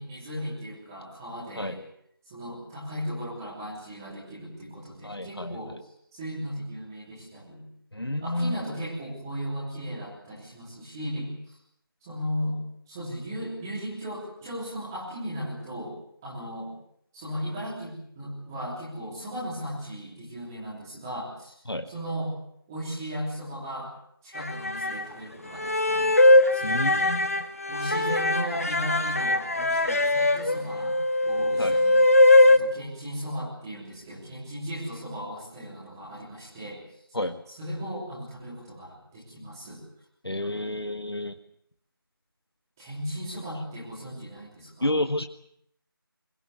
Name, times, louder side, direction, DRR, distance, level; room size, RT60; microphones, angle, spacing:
voice 1, 0.0-1.8 2.3-5.7 6.1-7.6 8.2-11.5 12.0-16.0 16.2-16.7 17.1-21.6 21.9-22.3 22.7-23.9 24.2-26.2 26.5-27.2 27.6-32.0 32.5-36.8 37.5-39.8 40.4-40.6 42.8-44.9, equal, 10° right, -6 dB, 3.4 m, -36 dB
voice 2, 5.0-5.6 7.9-8.5 21.7-21.9 26.6-27.4 31.6-31.8 37.1-37.4 40.2-41.3 44.8-45.3, left 1 dB, 85° left, 7 dB, 1.8 m, -30 dB
sound 1, 24.4-25.0 25.6-32.6, left 2 dB, 35° left, 1.4 m, -21 dB
22.0 x 18.0 x 9.6 m, 0.71 s
figure-of-eight pair, 170°, 13 cm